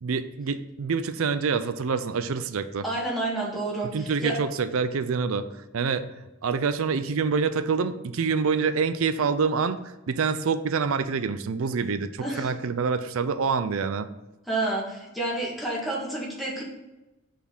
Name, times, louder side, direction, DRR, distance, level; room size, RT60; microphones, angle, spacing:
voice 1, 0.0-2.8 3.9-6.1 6.4-14.1, right 5 dB, 70° right, 12 dB, 0.5 m, -26 dB
voice 2, 2.8-4.4 12.2-12.5 14.5-16.6, right 2 dB, ahead, -5 dB, 1.8 m, -29 dB
5.9 x 4.3 x 5.4 m, 1.0 s
head